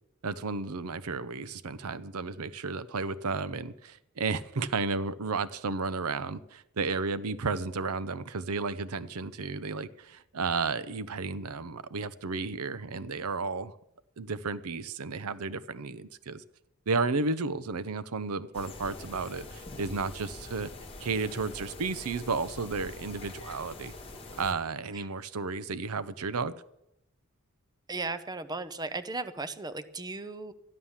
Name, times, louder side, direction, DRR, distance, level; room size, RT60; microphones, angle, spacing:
voice 1, 0.2-13.8 14.2-16.4 16.9-20.7 21.0-23.9 24.4-26.5, right 4 dB, 75° right, 16 dB, 0.7 m, -33 dB
sound 1, 18.5-24.5, left 2 dB, 25° left, 1.8 m, -44 dB
voice 2, 27.9-30.5, right 3 dB, 20° right, 11 dB, 0.7 m, -36 dB
13.0 x 11.0 x 7.2 m, 0.82 s
head